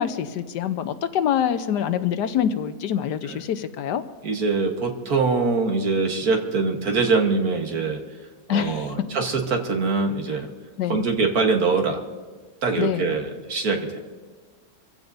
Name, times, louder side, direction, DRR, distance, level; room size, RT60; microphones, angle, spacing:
voice 1, 0.0-4.0 8.5-8.9 10.8-11.1 12.8-13.0, left 9 dB, 80° left, 11 dB, 1.3 m, -25 dB
voice 2, 4.2-8.0 8.5-10.5 10.9-12.0 12.6-14.0, right 4 dB, 60° right, 4 dB, 1.7 m, -23 dB
25.0 x 15.5 x 2.7 m, 1.4 s
omnidirectional pair, 1.8 m